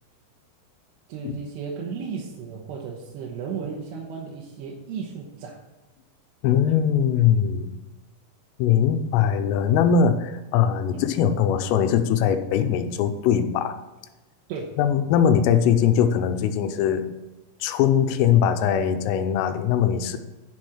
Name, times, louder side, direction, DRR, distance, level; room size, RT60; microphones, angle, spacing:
voice 1, 1.1-5.6 10.9-11.0 14.5-14.7 18.0-18.2, right 6 dB, 75° right, -2 dB, 2.7 m, -34 dB
voice 2, 6.4-7.7 8.6-13.7 14.8-17.1 17.6-20.2, left 8 dB, 85° left, 8 dB, 3.3 m, -21 dB
11.5 x 4.4 x 4.8 m, 1.1 s
omnidirectional pair, 5.8 m